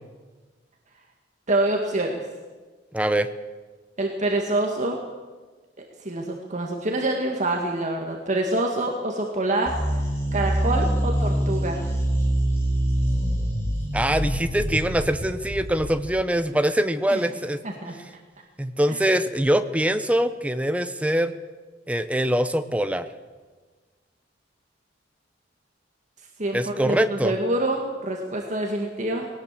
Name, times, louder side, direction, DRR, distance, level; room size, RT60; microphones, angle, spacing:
voice 1, 1.5-2.2 4.0-5.0 6.0-9.9 10.3-11.8 17.1-17.2 17.6-18.0 26.4-29.3, right 1 dB, 40° right, 1 dB, 2.0 m, -26 dB
voice 2, 2.9-3.3 13.9-17.6 18.6-21.3 21.9-23.1 26.5-27.3, right 1 dB, 5° right, 10 dB, 0.9 m, -23 dB
sound 1, 9.7-16.2, right 1 dB, 15° left, 5.7 m, -25 dB
20.0 x 18.5 x 7.6 m, 1.4 s
head